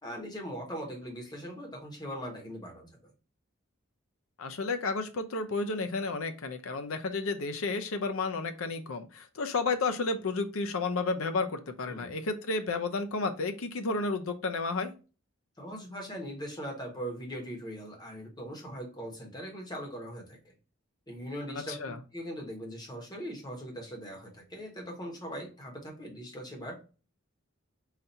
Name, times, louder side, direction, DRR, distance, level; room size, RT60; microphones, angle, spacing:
voice 1, 0.0-3.1 11.9-12.1 15.6-20.5 21.1-21.8 22.1-26.8, equal, 20° left, 1 dB, 1.2 m, -40 dB
voice 2, 4.4-14.9 21.7-22.0, left 3 dB, 85° left, 8 dB, 0.6 m, -32 dB
4.1 x 2.7 x 4.2 m, 0.34 s
head